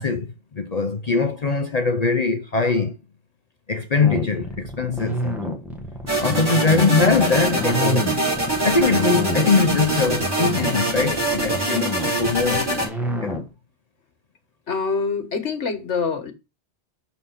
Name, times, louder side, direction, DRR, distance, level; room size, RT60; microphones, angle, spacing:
voice 1, 0.0-3.0 3.7-5.6 6.2-8.2 8.6-12.9 13.2-13.4, left 4 dB, 45° left, 0.6 m, -22 dB
sound 1, 4.0-13.5, left 1 dB, ahead, 1.4 m, -29 dB
sound 2, 6.1-12.9, right 1 dB, 45° right, 3.6 m, -24 dB
voice 2, 14.7-16.3, left 5 dB, 80° left, 1.7 m, -25 dB
6.6 x 4.2 x 5.7 m
omnidirectional pair, 1.2 m